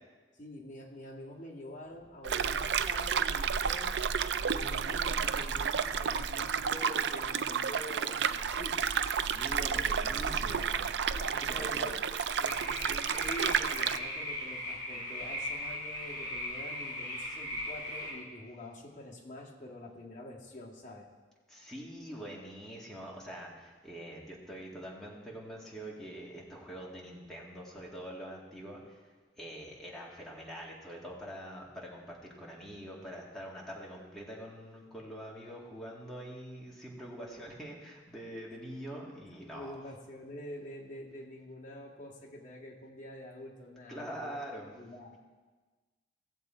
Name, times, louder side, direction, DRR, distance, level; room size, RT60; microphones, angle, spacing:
voice 1, 0.3-4.0 4.5-8.9 11.1-11.9 12.4-21.1 39.4-44.3 44.7-45.2, left 1 dB, 45° left, -2 dB, 2.0 m, -46 dB
sound 1, 2.2-14.0, right 7 dB, 75° right, 0.4 m, -31 dB
voice 2, 9.3-10.7 11.4-12.0 21.5-29.1 29.4-39.8 43.9-44.7, equal, ahead, -5 dB, 2.1 m, -44 dB
sound 2, 12.4-18.1, left 1 dB, 25° left, 3.6 m, -38 dB
16.5 x 7.4 x 4.4 m, 1.4 s
head